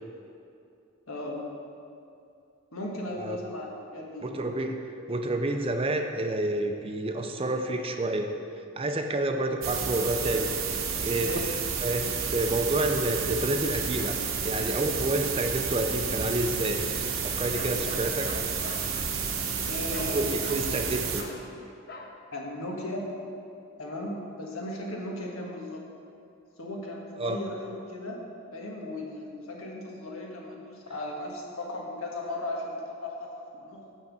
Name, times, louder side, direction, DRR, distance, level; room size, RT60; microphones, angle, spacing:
voice 1, 1.1-1.4 2.7-4.5 11.2-11.5 19.6-20.3 22.3-23.2 23.8-25.8 26.6-28.2 28.5-33.3 33.6-33.8, left 1 dB, 90° left, -1 dB, 1.5 m, -36 dB
voice 2, 4.2-4.8 5.1-8.3 8.8-16.8 17.2-18.3 20.1-21.2 27.2-27.4, right 2 dB, 25° right, 4 dB, 0.5 m, -29 dB
sound 1, 9.6-21.2, right 6 dB, 75° right, 1.0 m, -31 dB
Bark, 17.5-18.9 19.9-20.2 20.4-20.7 21.1-21.4 21.9-22.2, left 2 dB, 45° left, 0.7 m, -42 dB
6.6 x 6.0 x 7.1 m, 2.6 s
head